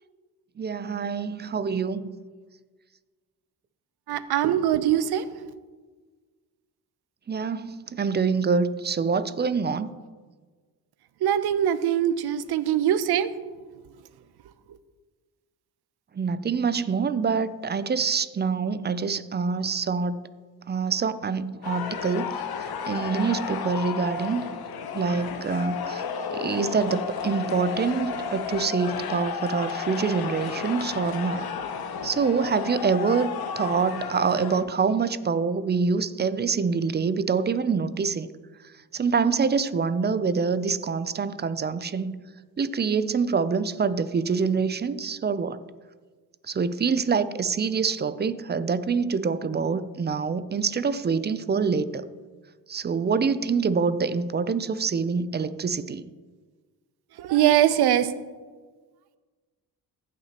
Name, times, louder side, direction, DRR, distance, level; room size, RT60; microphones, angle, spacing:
voice 1, 0.6-2.2 7.3-9.9 16.1-20.3 20.7-24.4 24.9-26.0 26.3-31.5 32.0-38.3 38.9-42.2 42.6-45.6 46.5-52.1 52.7-56.1, right 5 dB, 25° right, 14 dB, 0.5 m, -26 dB
voice 2, 4.1-5.2 11.2-13.3 57.3-58.1, right 11 dB, 70° right, 14 dB, 0.7 m, -22 dB
sound 1, 21.6-34.6, left 6 dB, 65° left, 0.9 m, -32 dB
15.5 x 5.9 x 2.9 m, 1.4 s
cardioid pair, 75°, 40 cm